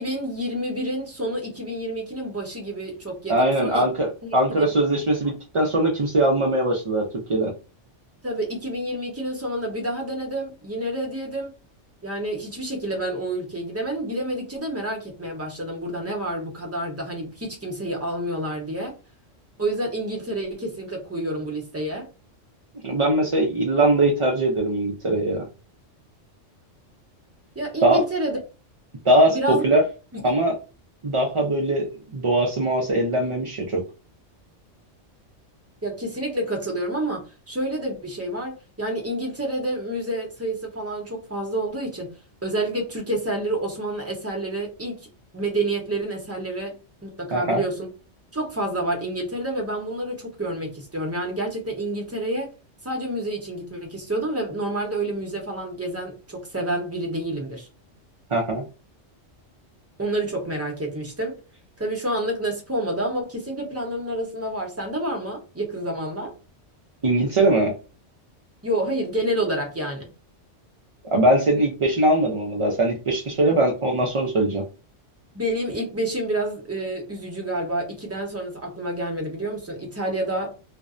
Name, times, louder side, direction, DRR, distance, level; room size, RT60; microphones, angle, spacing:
voice 1, 0.0-3.8 4.2-4.7 8.2-11.5 12.0-18.9 19.6-22.1 27.5-28.4 29.3-29.6 30.1-30.2 35.8-46.7 47.0-47.9 48.3-52.5 52.8-57.7 60.0-61.4 61.8-66.3 68.6-70.1 75.3-80.6, right 1 dB, 15° right, 0.7 m, -28 dB
voice 2, 3.3-7.5 22.8-25.5 27.8-28.0 29.0-29.8 30.2-30.6 31.0-33.8 47.3-47.6 58.3-58.6 67.0-67.7 71.0-74.6, right 1 dB, 55° right, 0.3 m, -21 dB
2.5 x 2.1 x 2.4 m
omnidirectional pair, 1.3 m